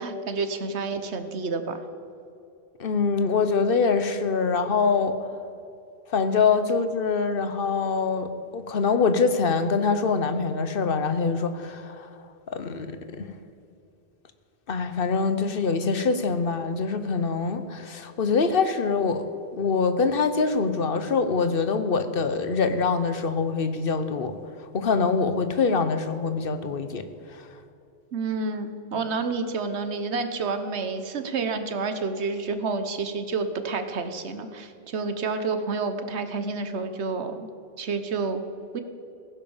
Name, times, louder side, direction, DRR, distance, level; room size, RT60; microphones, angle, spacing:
voice 1, 0.0-1.8 28.1-37.5 37.8-38.4 38.7-38.8, right 4 dB, 85° right, 8 dB, 1.3 m, -29 dB
voice 2, 2.8-5.2 6.1-12.1 12.5-13.3 14.7-19.2 19.5-24.4 24.7-27.1, left 4 dB, 60° left, 10 dB, 1.2 m, -24 dB
16.0 x 10.5 x 7.2 m, 2.6 s
omnidirectional pair, 1.1 m